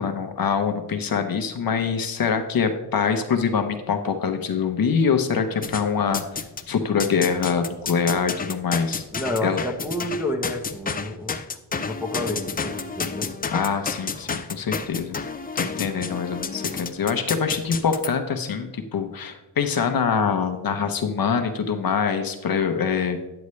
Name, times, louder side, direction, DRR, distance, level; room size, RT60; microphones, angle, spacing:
voice 1, 0.0-9.0 9.4-9.6 13.5-15.2 15.5-23.2, left 6 dB, 55° left, 6 dB, 0.8 m, -24 dB
sound 1, 5.6-6.6 7.0-18.1, left 5 dB, 25° left, 0.4 m, -31 dB
voice 2, 9.1-11.4 11.8-13.3, left 1 dB, 5° right, 3 dB, 1.0 m, -30 dB
9.5 x 7.9 x 3.2 m, 1.0 s
wide cardioid pair, 145°, 42 cm